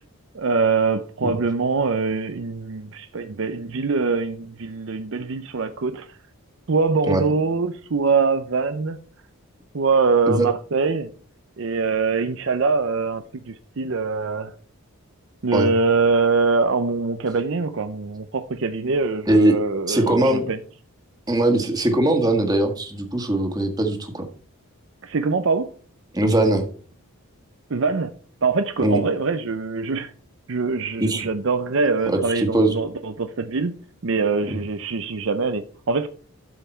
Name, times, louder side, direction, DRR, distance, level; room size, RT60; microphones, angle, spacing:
voice 1, 0.3-6.2 6.7-9.0 9.7-11.1 11.6-14.5 15.4-20.6 25.0-25.7 27.7-28.1 28.4-30.1 30.5-33.7 34.0-36.1, right 4 dB, 60° right, 0.6 m, -23 dB
voice 2, 19.3-19.6 19.9-20.5 21.3-24.2 26.1-26.7 28.8-29.0 31.0-31.3 32.1-32.7 34.5-34.6, right 1 dB, 15° right, 1.7 m, -20 dB
12.5 x 5.7 x 4.5 m
head